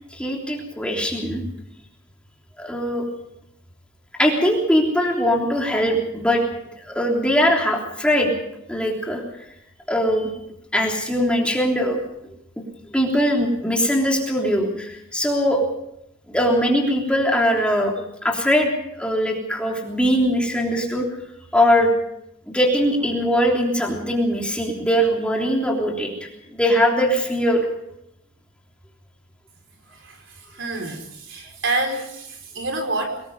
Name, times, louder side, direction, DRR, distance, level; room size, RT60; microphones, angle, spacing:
voice 1, 0.1-1.4 2.6-3.0 4.2-6.4 6.8-8.3 8.7-9.2 9.9-10.3 10.7-12.6 12.9-15.7 16.3-17.9 18.2-18.7 19.0-21.0 21.5-21.9 22.5-26.1 26.5-27.6, equal, 5° left, -1 dB, 3.3 m, -21 dB
voice 2, 29.9-33.2, right 2 dB, 55° right, 4 dB, 4.7 m, -28 dB
24.0 x 19.5 x 5.5 m, 0.78 s
head